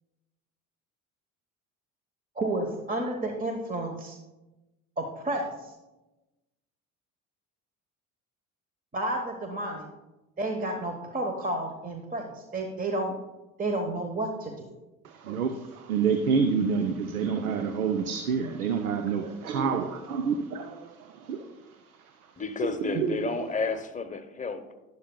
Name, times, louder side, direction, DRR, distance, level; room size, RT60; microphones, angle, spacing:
voice 1, 2.4-4.2 5.0-5.5 8.9-9.9 10.4-13.1 13.6-14.7, right 1 dB, 20° right, 4 dB, 1.1 m, -31 dB
voice 2, 15.2-20.9 21.3-21.5 23.0-23.2, right 6 dB, 85° right, 8 dB, 0.6 m, -27 dB
voice 3, 22.4-24.8, left 4 dB, 20° left, 9 dB, 0.9 m, -31 dB
11.5 x 11.0 x 2.2 m, 1.0 s
figure-of-eight pair, 60°, 42 cm